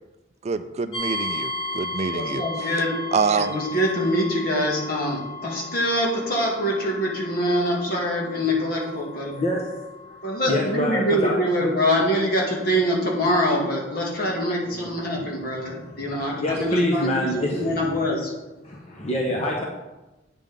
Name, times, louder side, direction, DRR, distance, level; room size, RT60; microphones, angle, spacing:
voice 1, 0.4-2.7 3.1-3.6, right 5 dB, 35° right, 11 dB, 0.3 m, -26 dB
sound 1, 0.9-15.8, left 2 dB, 85° left, 2.5 m, -36 dB
voice 2, 2.1-3.1 3.4-9.4 10.2-18.3, equal, 55° left, -2 dB, 2.3 m, -24 dB
voice 3, 9.3-10.2 10.5-11.3 11.6-11.7 12.0-12.1 14.7-14.9 15.7-17.9 18.6-19.6, left 1 dB, 35° left, -2 dB, 1.0 m, -26 dB
9.1 x 5.7 x 5.2 m, 1.1 s
head